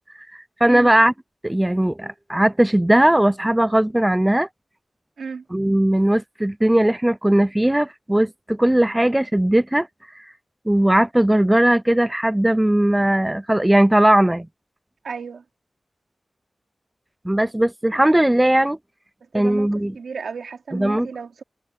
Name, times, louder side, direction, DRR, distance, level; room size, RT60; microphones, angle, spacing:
voice 1, 0.6-1.1 1.4-4.5 5.5-9.9 10.2-10.3 10.7-14.5 17.3-18.8 19.3-19.9 20.7-21.1, right 1 dB, 10° right, 0.4 m, -18 dB
voice 2, 15.0-15.4 19.3-21.4, right 5 dB, 85° right, 4.2 m, -33 dB
wide cardioid pair, 95°, 0 cm